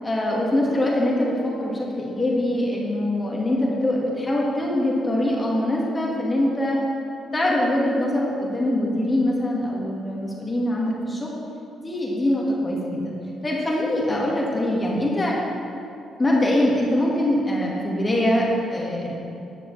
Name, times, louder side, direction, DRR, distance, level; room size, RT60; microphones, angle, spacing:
voice 1, 0.0-6.8 7.3-11.3 11.8-13.1 13.4-15.4 16.2-19.1, left 1 dB, 20° left, -4 dB, 1.8 m, -23 dB
11.5 x 9.2 x 3.3 m, 2.7 s
cardioid pair, 90°, 0 cm